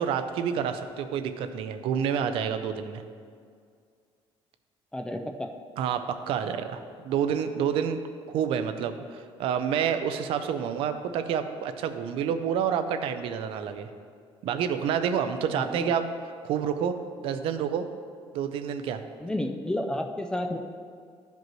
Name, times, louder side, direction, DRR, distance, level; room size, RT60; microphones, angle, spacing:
voice 1, 0.0-3.0 5.8-8.0 8.3-13.9 14.4-16.1 16.4-17.9 18.3-19.0, right 8 dB, 60° right, 9 dB, 0.5 m, -28 dB
voice 2, 4.9-5.5 15.5-15.9 19.2-20.6, left 1 dB, 10° left, 5 dB, 0.3 m, -31 dB
12.5 x 5.2 x 3.1 m, 2.1 s
cardioid pair, 170°, 10 cm